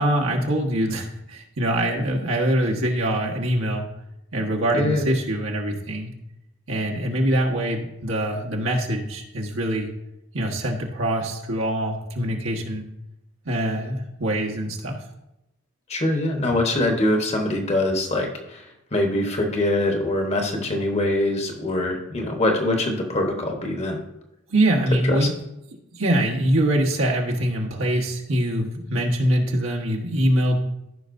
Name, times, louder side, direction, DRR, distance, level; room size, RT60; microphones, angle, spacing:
voice 1, 0.0-3.8 4.3-6.1 6.7-9.9 10.3-12.9 13.4-15.0 24.5-25.3 25.9-30.6, right 1 dB, 75° right, -1 dB, 1.4 m, -23 dB
voice 2, 4.7-5.0 15.9-18.6 18.9-24.0 25.1-25.3, left 1 dB, 30° left, 3 dB, 1.1 m, -23 dB
14.0 x 5.5 x 2.6 m, 0.87 s
head